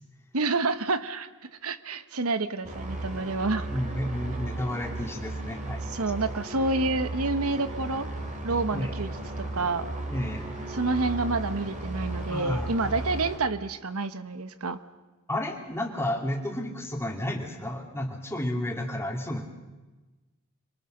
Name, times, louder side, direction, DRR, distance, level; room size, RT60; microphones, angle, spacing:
voice 1, 0.3-1.3 1.6-3.7 5.9-8.1 8.4-9.1 9.5-9.9 10.7-14.8, right 3 dB, 75° right, 12 dB, 1.1 m, -28 dB
sound 1, 2.6-13.4, right 2 dB, 35° right, 3.3 m, -35 dB
voice 2, 3.7-5.8 8.7-8.9 10.1-10.5 12.3-12.8 15.3-19.5, left 1 dB, 10° left, 1 dB, 2.6 m, -32 dB
26.5 x 23.5 x 6.6 m, 1.2 s
head